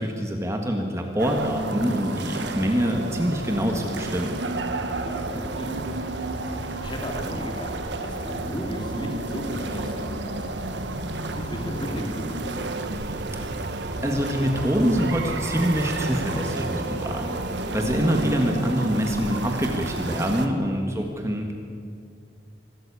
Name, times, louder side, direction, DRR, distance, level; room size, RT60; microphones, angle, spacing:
voice 1, 0.0-4.4 13.3-13.5 14.0-21.5, equal, 15° right, 2 dB, 1.7 m, -25 dB
sound 1, 1.2-20.5, right 2 dB, 85° right, 1.5 m, -31 dB
voice 2, 4.8-5.8 6.2-6.4 6.8-10.4 11.3-12.7 20.7-21.1, equal, 25° left, 2 dB, 3.0 m, -35 dB
sound 2, 12.5-18.2, right 4 dB, 60° right, 0.9 m, -38 dB
24.5 x 13.5 x 8.5 m, 2.3 s
head